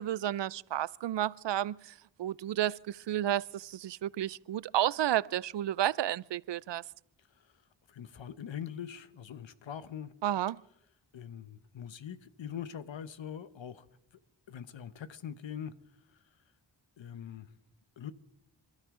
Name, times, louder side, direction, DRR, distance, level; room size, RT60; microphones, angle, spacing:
voice 1, 0.0-6.8 10.2-10.6, right 12 dB, 65° right, 0.5 m, -32 dB
voice 2, 7.9-10.1 11.1-13.9 14.5-15.7 17.0-17.5 18.0-18.1, left 8 dB, 75° left, 1.1 m, -42 dB
27.5 x 13.0 x 3.7 m
cardioid pair, 55°, 46 cm